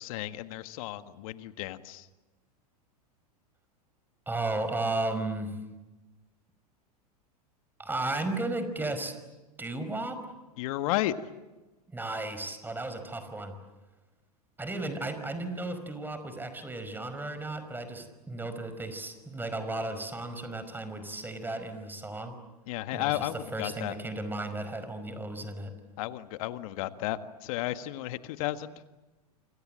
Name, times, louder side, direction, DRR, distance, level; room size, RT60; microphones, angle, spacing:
voice 1, 0.0-2.1 10.6-11.2 22.7-24.0 26.0-28.8, left 15 dB, 60° left, 10 dB, 1.8 m, -33 dB
voice 2, 4.3-5.5 7.8-9.1 9.6-10.2 11.9-13.6 14.6-22.4 22.9-25.7, right 2 dB, 10° right, 10 dB, 5.2 m, -34 dB
28.0 x 26.5 x 7.8 m, 1.1 s
hypercardioid pair, 100°, 20 cm